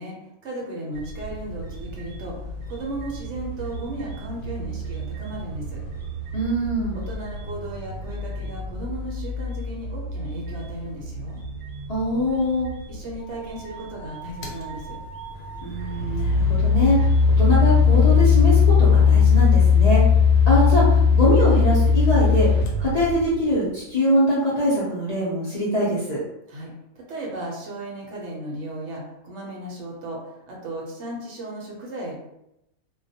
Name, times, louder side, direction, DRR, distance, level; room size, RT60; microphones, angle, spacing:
voice 1, 0.0-5.8 6.9-11.4 12.9-15.0 26.5-32.1, right 1 dB, 65° right, -2 dB, 0.8 m, -35 dB
sound 1, 0.9-17.4, right 1 dB, 90° right, 1.0 m, -36 dB
voice 2, 6.3-7.0 11.9-12.7 15.6-17.1 17.4-20.0 20.5-22.5 22.8-26.2, equal, 55° left, -8 dB, 0.4 m, -23 dB
sound 2, 13.2-18.3, right 5 dB, 25° left, 0.9 m, -44 dB
sound 3, 14.4-14.6 15.5-23.5, left 6 dB, 80° left, 0.9 m, -17 dB
2.3 x 2.1 x 2.6 m, 0.85 s
omnidirectional pair, 1.4 m